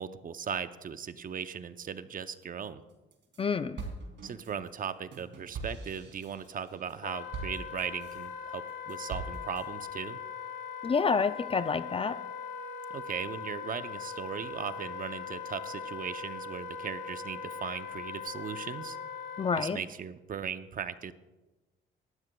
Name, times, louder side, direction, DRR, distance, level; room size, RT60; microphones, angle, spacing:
voice 1, 0.0-2.8 4.2-10.2 12.9-19.0 19.6-21.1, right 7 dB, 45° right, 12 dB, 0.7 m, -38 dB
sound 1, 2.9-3.4 3.8-8.3 8.7-9.6, right 4 dB, 65° right, 2.9 m, -42 dB
voice 2, 3.4-3.9 10.8-12.2 19.4-19.8, left 5 dB, 30° left, 13 dB, 0.4 m, -28 dB
Wind instrument woodwind instrument, 7.0-19.7, left 6 dB, 70° left, 1.9 m, -40 dB
18.5 x 12.5 x 2.3 m, 1.1 s
cardioid pair, 90°, 20 cm